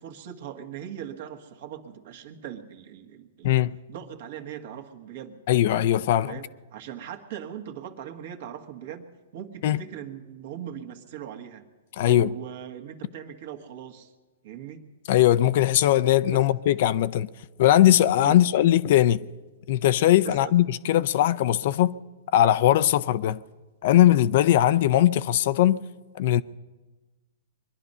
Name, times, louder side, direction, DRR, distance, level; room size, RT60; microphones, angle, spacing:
voice 1, 0.0-3.6 3.9-5.4 6.2-11.7 12.0-14.1 14.4-14.8 16.3-16.4 18.2-18.5 20.2-20.5, right 9 dB, 60° right, 1.6 m, -40 dB
voice 2, 3.4-3.8 5.5-6.3 9.6-9.8 12.0-12.3 15.1-17.3 17.6-19.3 19.7-21.9 22.3-23.4 23.8-25.8 26.1-26.4, left 12 dB, 55° left, 0.5 m, -20 dB
22.5 x 10.5 x 5.5 m
hypercardioid pair, 130°, 0 cm